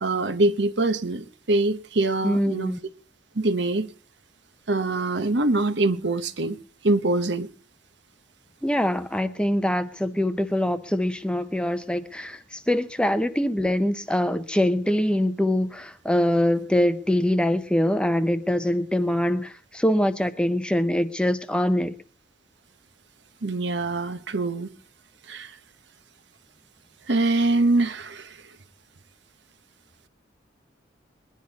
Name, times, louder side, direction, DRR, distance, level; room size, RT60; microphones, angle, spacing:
voice 1, 0.0-2.7 3.3-3.9 4.7-6.6 6.8-7.5 23.4-24.7 25.3-25.6 27.1-28.4, right 2 dB, 65° right, 1.0 m, -24 dB
voice 2, 2.2-2.8 8.6-22.0, left 1 dB, 5° left, 0.7 m, -24 dB
21.5 x 10.5 x 4.1 m
head